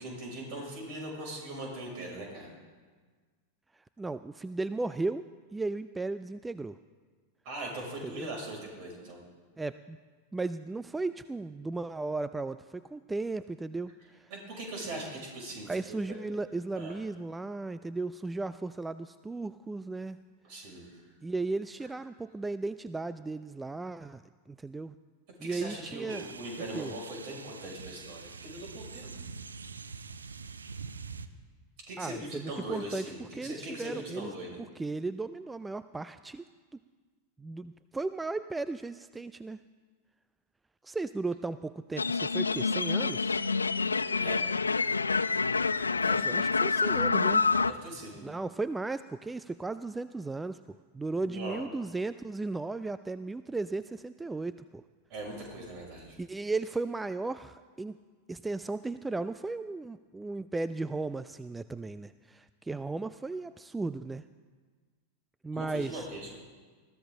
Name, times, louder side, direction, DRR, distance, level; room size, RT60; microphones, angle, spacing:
voice 1, 0.0-2.6 7.4-9.2 14.3-16.0 16.2-16.3 16.8-16.9 20.4-21.0 25.4-29.1 31.9-34.6 44.2-44.4 45.9-46.2 47.7-48.2 51.2-51.6 55.1-56.2 65.5-66.3, right 1 dB, 45° right, -1 dB, 6.1 m, -40 dB
voice 2, 4.0-5.2 5.5-6.8 8.0-8.3 9.6-10.0 10.3-14.3 15.7-20.2 21.2-24.9 25.4-26.3 26.7-26.9 32.0-34.3 34.8-36.4 37.4-39.6 40.8-43.5 46.2-47.5 48.2-54.8 56.2-58.0 58.3-64.3 65.4-66.1, right 3 dB, 10° right, 14 dB, 0.3 m, -35 dB
sound 1, 26.1-31.3, right 5 dB, 75° right, 0.7 m, -44 dB
sound 2, 42.0-47.7, left 4 dB, 75° left, 0.4 m, -27 dB
21.0 x 14.5 x 3.8 m, 1.5 s
figure-of-eight pair, 90°, 0 cm